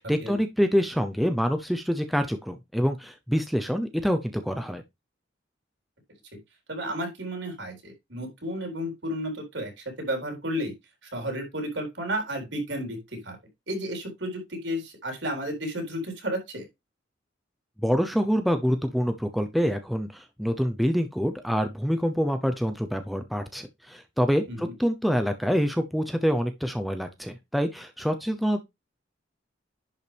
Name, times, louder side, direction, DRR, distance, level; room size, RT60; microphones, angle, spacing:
voice 1, 0.0-4.8 17.8-28.6, equal, ahead, 0.7 m, -26 dB
voice 2, 6.7-9.7 10.0-10.7 11.1-13.4 13.7-16.7 24.5-24.7, equal, 70° right, 4.2 m, -32 dB
10.5 x 5.4 x 3.4 m
head